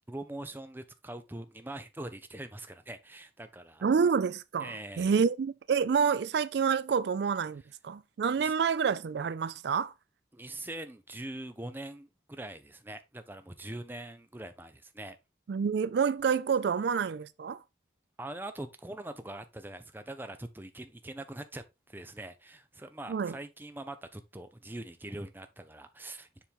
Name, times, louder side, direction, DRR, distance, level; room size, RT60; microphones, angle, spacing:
voice 1, 0.1-3.8 4.6-5.2 8.4-8.5 10.3-15.2 18.2-26.3, right 1 dB, 10° right, 0.6 m, -43 dB
voice 2, 3.8-9.9 15.5-17.6 23.1-23.3, right 6 dB, 65° right, 0.3 m, -28 dB
7.1 x 4.4 x 3.5 m
head